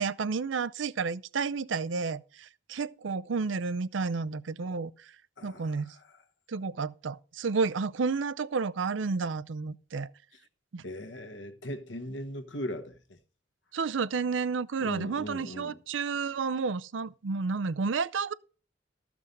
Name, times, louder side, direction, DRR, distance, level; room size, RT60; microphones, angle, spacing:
voice 1, 0.0-4.9 5.4-6.0 6.5-10.1 10.7-10.8 13.7-18.3, right 4 dB, 85° right, 0.5 m, -31 dB
voice 2, 5.4-6.2 10.8-13.2 14.8-15.8, left 1 dB, 75° left, 1.3 m, -39 dB
14.0 x 6.0 x 5.2 m
head